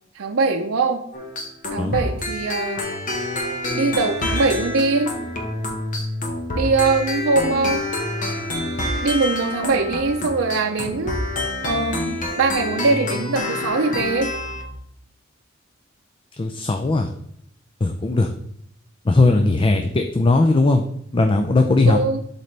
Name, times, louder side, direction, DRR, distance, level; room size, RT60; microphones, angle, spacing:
voice 1, 0.1-1.0 1.7-2.8 3.7-5.1 6.5-7.8 9.0-11.2 11.6-14.3 21.9-22.2, right 3 dB, 85° right, 2 dB, 0.6 m, -22 dB
sound 1, 1.1-14.7, left 1 dB, 40° left, 1.3 m, -27 dB
voice 2, 16.4-17.1 17.8-18.3 19.0-22.0, left 2 dB, 25° left, 6 dB, 0.4 m, -18 dB
11.5 x 4.1 x 3.3 m, 0.73 s
head